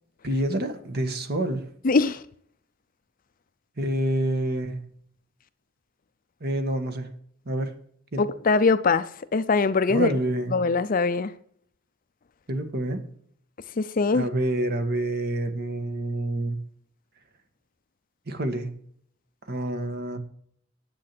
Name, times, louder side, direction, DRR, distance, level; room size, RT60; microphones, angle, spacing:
voice 1, 0.2-1.6 3.8-4.8 6.4-7.1 7.4-7.7 8.1-8.2 9.9-10.5 12.5-13.0 14.1-16.6 18.3-18.7 19.5-20.2, right 1 dB, 50° right, 1.6 m, -27 dB
voice 2, 1.8-2.2 8.2-10.1 10.5-11.3 13.8-14.3, left 4 dB, 45° left, 0.5 m, -22 dB
10.0 x 8.4 x 6.0 m
head